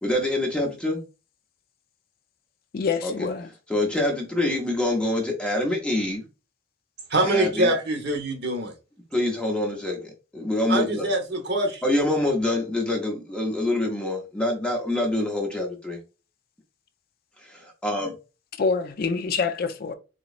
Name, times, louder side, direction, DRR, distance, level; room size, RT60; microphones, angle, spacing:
voice 1, 0.0-1.0 3.0-3.1 3.7-6.2 7.2-7.7 9.1-11.1 11.8-16.0 17.4-18.1, left 1 dB, 5° left, 0.6 m, -26 dB
voice 2, 2.7-3.5 18.6-19.9, left 5 dB, 50° left, 0.4 m, -26 dB
voice 3, 7.1-8.7 10.7-11.8, right 1 dB, 55° right, 1.0 m, -24 dB
4.0 x 2.9 x 2.4 m
head